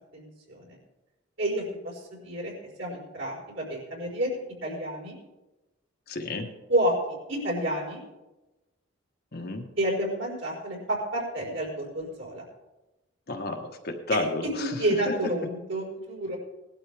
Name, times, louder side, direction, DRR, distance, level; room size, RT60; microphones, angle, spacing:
voice 1, 0.1-0.8 1.4-2.5 2.8-4.3 4.6-5.2 6.7-6.9 7.3-8.0 9.8-12.5 14.1-16.4, right 1 dB, 75° right, -3 dB, 4.9 m, -30 dB
voice 2, 6.1-6.5 9.3-9.6 13.3-14.4, left 2 dB, 50° left, 3 dB, 1.3 m, -31 dB
19.0 x 12.0 x 3.5 m, 1.0 s
head